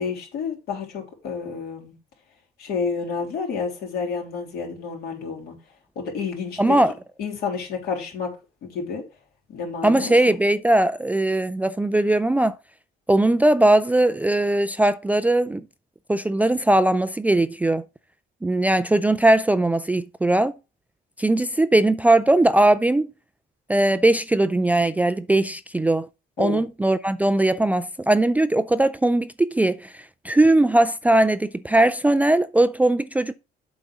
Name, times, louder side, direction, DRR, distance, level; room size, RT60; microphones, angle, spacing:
voice 1, 0.0-1.9 2.6-5.5 5.9-6.8 7.2-8.3 8.6-9.0 9.5-10.4 26.4-26.6, left 5 dB, 70° left, 3.3 m, -30 dB
voice 2, 6.6-6.9 9.8-12.5 13.1-15.6 16.1-17.8 18.4-20.5 21.2-23.1 23.7-26.1 26.4-33.3, right 1 dB, 10° right, 0.3 m, -19 dB
7.8 x 4.1 x 6.1 m
cardioid pair, 110°, 17 cm